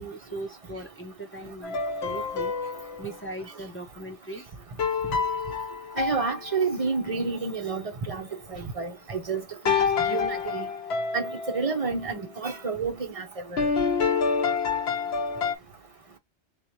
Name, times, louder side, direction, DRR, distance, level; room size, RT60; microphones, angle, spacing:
voice 1, 0.0-2.5 3.0-4.5, right 2 dB, 15° left, 0.6 m, -39 dB
sound 1, 1.6-3.2 4.8-7.0 9.7-11.7 13.6-15.6, left 5 dB, 65° left, 1.0 m, -27 dB
voice 2, 6.0-10.7 11.1-13.7, right 4 dB, 35° right, 0.8 m, -30 dB
3.7 x 3.1 x 2.9 m
omnidirectional pair, 1.2 m